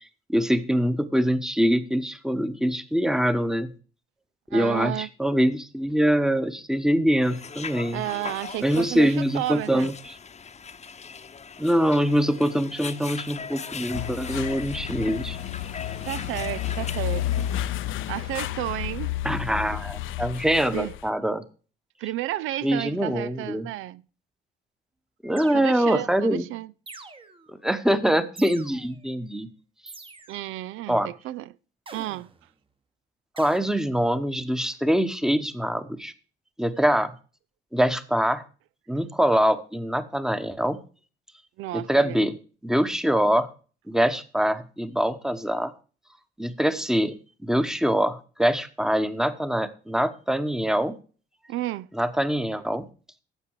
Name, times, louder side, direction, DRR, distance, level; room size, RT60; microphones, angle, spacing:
voice 1, 0.3-3.7 4.5-8.0 8.6-10.2 11.6-15.4 19.2-21.4 22.6-23.7 25.2-26.4 27.5-29.5 30.9-31.1 33.4-36.1 36.6-37.1 37.7-38.4 38.9-40.8 41.7-42.3 42.6-43.5 43.9-45.7 46.4-47.2 47.4-50.9 51.9-52.8, equal, 5° right, 1.0 m, -24 dB
voice 2, 4.5-5.1 7.9-9.9 16.0-17.5 18.1-19.2 20.7-20.9 22.0-24.0 25.5-26.7 30.3-31.6 31.9-32.3 41.6-42.3 51.5-51.9, right 15 dB, 90° right, 0.4 m, -32 dB
sound 1, 7.2-17.6, left 6 dB, 35° left, 0.8 m, -39 dB
sound 2, 13.9-21.1, left 13 dB, 80° left, 0.6 m, -31 dB
sound 3, 25.4-26.1 26.9-27.6 28.4-29.1 29.9-30.6 31.9-32.5 33.4-33.6, right 3 dB, 25° right, 1.2 m, -45 dB
12.0 x 7.6 x 4.7 m
cardioid pair, 90°, 20 cm